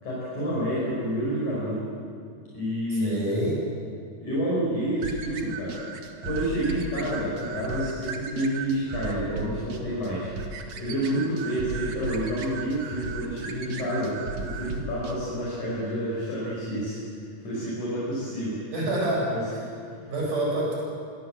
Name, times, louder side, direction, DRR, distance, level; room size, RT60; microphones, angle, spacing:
voice 1, 0.0-1.8 2.5-3.2 4.2-5.8 6.2-10.3 10.8-17.0 17.4-18.6 19.3-19.4, equal, 70° left, -7 dB, 7.5 m, -29 dB
voice 2, 2.9-3.6 18.7-19.7 20.1-20.8, right 1 dB, 75° right, -3 dB, 9.2 m, -27 dB
sound 1, 5.0-15.2, right 4 dB, 60° right, 3.1 m, -36 dB
26.0 x 23.0 x 8.0 m, 2.3 s
omnidirectional pair, 3.6 m